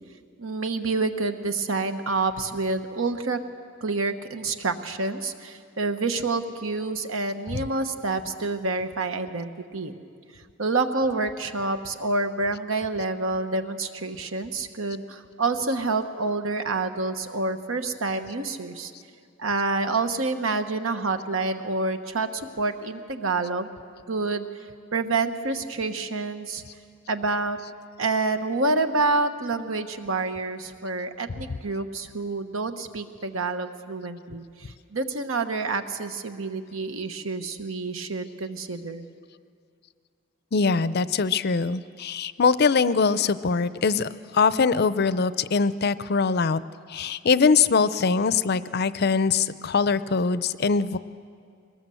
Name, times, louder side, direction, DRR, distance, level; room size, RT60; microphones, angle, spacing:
voice 1, 0.4-3.4 3.8-9.9 10.6-18.9 19.4-23.7 24.1-24.5 24.9-26.6 27.1-27.6 28.0-39.0, right 3 dB, 75° right, 8 dB, 1.2 m, -28 dB
voice 2, 40.5-46.6 46.9-51.0, left 5 dB, 50° left, 15 dB, 0.5 m, -22 dB
22.0 x 19.5 x 7.7 m, 2.3 s
head